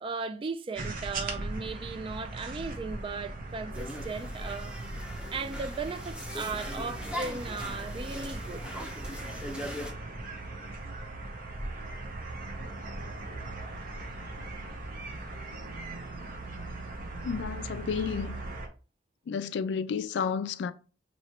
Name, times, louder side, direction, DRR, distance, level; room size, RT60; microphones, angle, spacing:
voice 1, 0.0-4.8 5.3-8.6, right 4 dB, 30° right, 0.3 m, -37 dB
sound 1, 0.8-18.7, right 2 dB, 50° right, 0.8 m, -39 dB
sound 2, 3.7-9.9, equal, 5° right, 0.7 m, -40 dB
voice 2, 17.2-18.4 19.3-20.7, left 6 dB, 70° left, 0.3 m, -31 dB
3.1 x 2.8 x 4.3 m
head